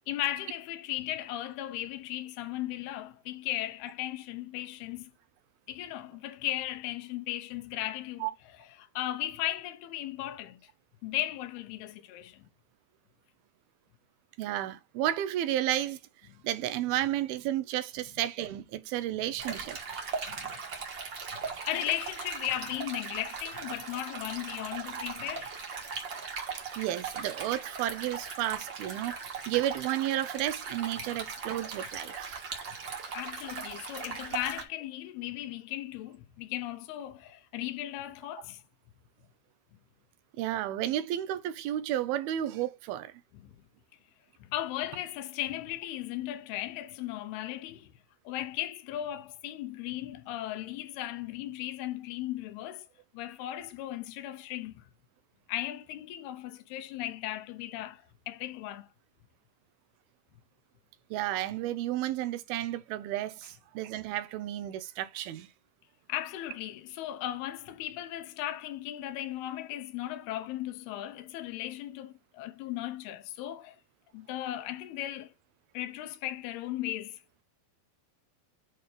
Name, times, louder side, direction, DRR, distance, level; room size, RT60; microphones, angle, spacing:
voice 1, 0.1-5.1 5.7-8.3 9.0-10.6 11.0-12.5 19.1-19.2 20.3-20.5 21.4-25.5 33.1-38.6 43.3-43.5 44.5-47.9 48.3-52.8 53.1-54.9 55.5-58.9 66.1-73.8 74.1-75.3 75.7-77.2, left 14 dB, 85° left, 2.8 m, -36 dB
voice 2, 14.4-16.0 16.4-19.8 26.8-32.4 40.4-43.1 61.1-65.5, right 13 dB, 80° right, 2.6 m, -32 dB
Stream, 19.4-34.6, right 5 dB, 40° right, 1.9 m, -39 dB
9.4 x 4.1 x 5.1 m
omnidirectional pair, 4.5 m